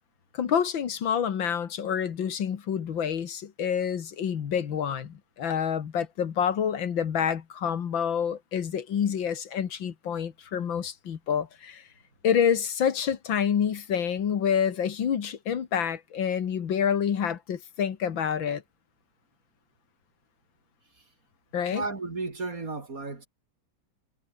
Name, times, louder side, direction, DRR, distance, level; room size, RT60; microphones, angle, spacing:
voice 1, 0.3-11.8 12.2-18.6 21.5-21.8, left 8 dB, 75° left, 2.3 m, -28 dB
voice 2, 21.7-23.3, right 3 dB, 45° right, 3.5 m, -33 dB
omnidirectional pair, 2.1 m